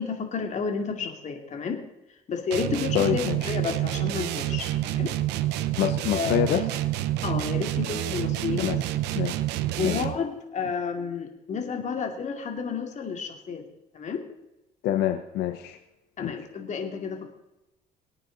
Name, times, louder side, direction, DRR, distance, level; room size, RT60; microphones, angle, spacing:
voice 1, 0.0-1.8 2.3-5.1 6.1-6.6 7.2-8.8 9.8-13.7 13.9-14.2 16.2-17.3, left 5 dB, 45° left, 4 dB, 2.5 m, -31 dB
sound 1, 2.5-10.3, right 14 dB, 90° right, 0.8 m, -28 dB
voice 2, 2.9-3.4 5.8-6.7 8.6-8.8 9.1-9.3 9.8-10.0 14.8-15.8 16.2-16.3, left 11 dB, 80° left, 7 dB, 0.9 m, -26 dB
23.5 x 9.0 x 4.0 m, 0.91 s
cardioid pair, 110°, 17 cm